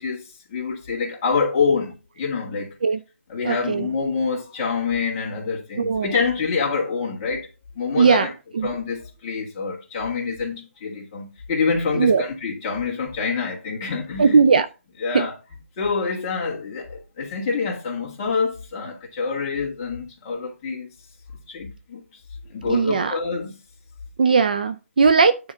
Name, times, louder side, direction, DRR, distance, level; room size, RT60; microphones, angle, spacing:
voice 1, 0.0-2.7 3.3-7.5 7.7-8.3 8.6-14.4 15.0-15.4 15.8-20.9 21.5-22.0 22.5-23.6, left 5 dB, 20° left, 1.9 m, -26 dB
voice 2, 3.4-3.9 5.8-6.1 8.0-8.3 8.5-8.7 11.9-12.2 14.2-14.7 15.1-15.3 22.7-23.2 24.2-25.4, right 5 dB, 35° right, 0.4 m, -18 dB
9.6 x 3.9 x 5.5 m
hypercardioid pair, 170°, 8 cm